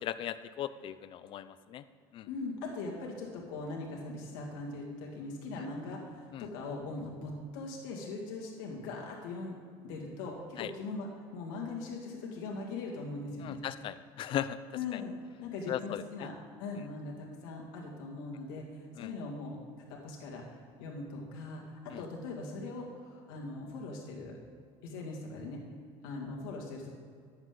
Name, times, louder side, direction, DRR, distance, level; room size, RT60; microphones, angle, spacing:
voice 1, 0.0-1.8 2.1-2.3 6.3-6.5 10.6-10.7 13.4-14.6 15.7-16.3 19.0-19.1 21.9-22.0, left 11 dB, 50° left, 14 dB, 0.5 m, -37 dB
voice 2, 2.3-9.6 9.8-13.6 14.7-19.6 19.9-20.4 20.8-24.4 24.8-25.6 26.0-26.9, left 3 dB, 90° left, -1 dB, 2.2 m, -40 dB
11.0 x 8.0 x 3.8 m, 2.2 s
supercardioid pair, 110°, 11 cm